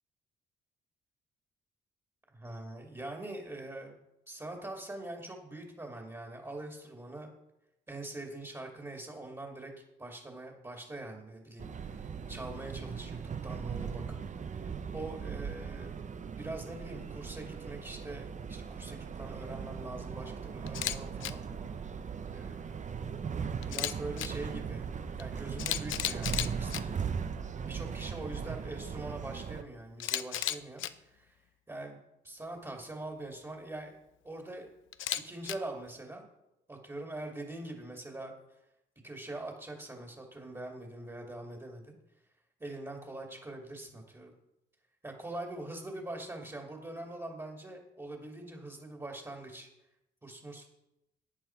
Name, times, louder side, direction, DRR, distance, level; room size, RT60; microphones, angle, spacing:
voice 1, 2.3-4.0 4.3-7.3 7.9-13.2 13.4-14.2 14.5-16.0 16.4-21.4 22.3-22.9 23.7-24.9 25.1-27.1 27.6-34.0 34.2-34.7 35.2-36.2 36.7-38.3 39.0-42.0 42.6-44.3 45.0-49.7 50.2-50.7, right 2 dB, 15° right, 1 dB, 2.3 m, -43 dB
sound 1, 11.6-29.6, right 6 dB, 40° right, 0.8 m, -39 dB
Camera, 20.7-21.0 21.2-21.3 23.6-24.3 25.2-25.3 25.6-26.8 30.0-30.9 34.9-35.5, left 12 dB, 80° left, 0.7 m, -33 dB
14.5 x 9.3 x 4.5 m, 0.88 s
cardioid pair, 90°, 20 cm